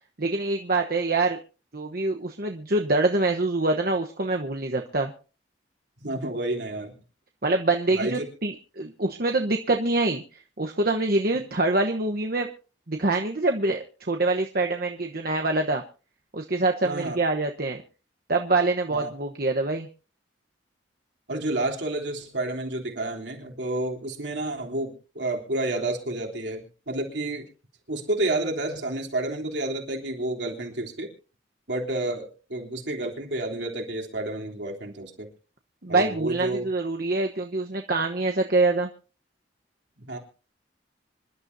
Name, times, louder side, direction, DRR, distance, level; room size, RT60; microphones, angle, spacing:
voice 1, 0.2-1.4 1.7-5.1 7.4-12.5 12.9-15.8 16.3-17.8 18.3-19.9 35.8-38.9, right 2 dB, 55° right, 3 dB, 1.1 m, -25 dB
voice 2, 6.0-6.9 7.9-8.3 16.8-17.2 18.9-19.1 21.3-27.5 27.9-31.1 31.7-35.3 35.9-36.7 40.0-40.2, right 2 dB, 70° right, 0 dB, 3.5 m, -30 dB
26.0 x 12.0 x 2.7 m, 0.36 s
head